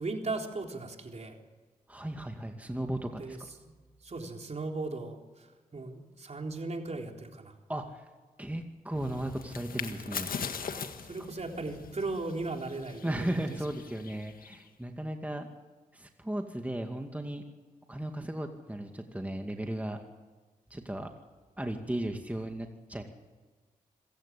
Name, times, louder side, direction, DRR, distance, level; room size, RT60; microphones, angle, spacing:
voice 1, 0.0-1.4 3.2-3.4 4.0-7.5 11.0-13.4, right 3 dB, 45° right, 2 dB, 3.7 m, -37 dB
voice 2, 1.9-3.4 7.7-8.0 8.4-10.3 13.0-15.5 15.9-17.4 17.9-20.0 20.7-21.1 21.6-23.0, right 1 dB, 10° right, 4 dB, 2.3 m, -35 dB
sound 1, 8.9-14.7, left 6 dB, 70° left, 1.7 m, -41 dB
26.0 x 16.0 x 8.6 m, 1.3 s
cardioid pair, 50°, 15 cm